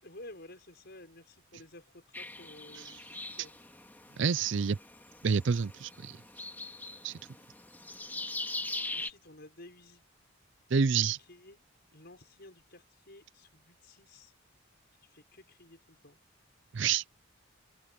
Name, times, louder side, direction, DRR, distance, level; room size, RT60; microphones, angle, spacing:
voice 1, 0.0-3.5 8.9-10.0 11.2-11.6 11.9-14.3 15.0-16.2, left 1 dB, 55° left, 6.3 m, -53 dB
sound 1, 2.1-9.1, left 2 dB, 10° left, 2.3 m, -42 dB
voice 2, 4.2-4.8 5.2-6.2 7.0-7.2 10.7-11.2 16.7-17.0, right 6 dB, 60° right, 0.5 m, -28 dB
head